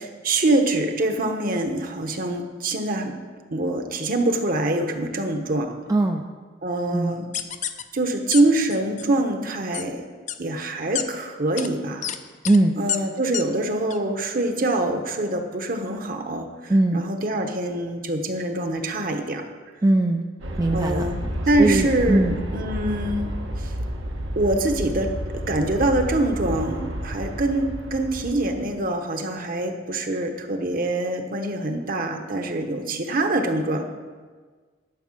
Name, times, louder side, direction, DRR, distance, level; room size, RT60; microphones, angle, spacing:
voice 1, 0.0-3.1 3.5-5.8 6.6-7.3 7.9-10.0 10.4-12.1 12.8-19.4 20.7-23.7 24.4-33.8, right 2 dB, 50° right, 5 dB, 1.0 m, -25 dB
voice 2, 5.9-6.2 6.9-7.1 12.4-12.8 16.7-17.0 19.8-20.3 20.6-21.1 21.6-22.4, right 2 dB, 20° right, 4 dB, 0.4 m, -20 dB
sound 1, 7.3-7.8 8.3-8.4 8.7-9.1 9.7-9.8 10.3-10.4 11.0-11.1 11.6-11.7 12.0-12.2 12.4-12.6 12.9-13.0 13.3-13.4 13.9-14.0, left 10 dB, 40° left, 0.5 m, -28 dB
Aircraft, 20.4-28.8, equal, 85° right, 1.4 m, -31 dB
11.5 x 5.5 x 7.3 m, 1.5 s
head